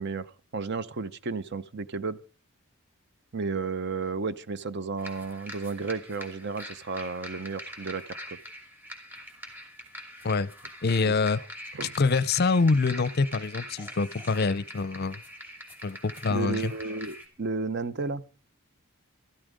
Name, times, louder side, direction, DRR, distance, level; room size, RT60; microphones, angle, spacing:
voice 1, 0.0-2.2 3.3-8.2 11.1-11.4 11.7-11.9 16.3-18.2, right 4 dB, 50° right, 0.8 m, -33 dB
sound 1, 5.0-17.3, equal, 10° right, 2.7 m, -43 dB
voice 2, 10.8-11.4 12.0-15.2 15.8-16.7, left 4 dB, 45° left, 0.6 m, -25 dB
13.5 x 13.0 x 5.1 m
head